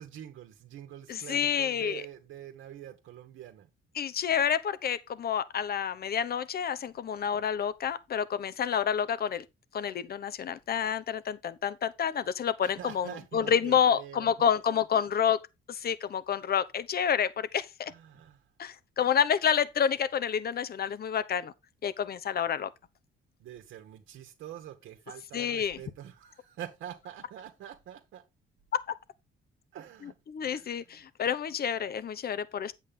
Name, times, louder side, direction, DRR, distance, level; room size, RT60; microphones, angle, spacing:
voice 1, 0.0-3.7 12.6-15.1 17.8-18.5 23.4-28.2 29.7-31.1, right 11 dB, 80° right, 1.5 m, -46 dB
voice 2, 1.1-2.0 4.0-9.4 9.7-15.4 15.7-17.9 18.6-21.5 21.8-22.7 25.3-25.8 30.3-32.7, left 8 dB, 50° left, 0.9 m, -29 dB
8.8 x 8.1 x 3.7 m
cardioid pair, 90°, 20 cm